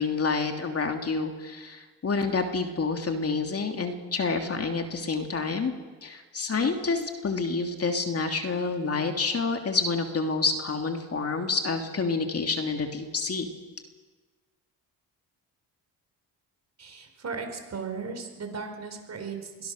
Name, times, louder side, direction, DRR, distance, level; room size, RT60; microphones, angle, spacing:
voice 1, 0.0-5.7 6.0-13.5, left 4 dB, 40° left, 4 dB, 2.8 m, -28 dB
voice 2, 16.8-19.7, right 5 dB, 40° right, 6 dB, 4.8 m, -36 dB
22.5 x 18.0 x 6.5 m, 1.4 s
supercardioid pair, 70°, 38 cm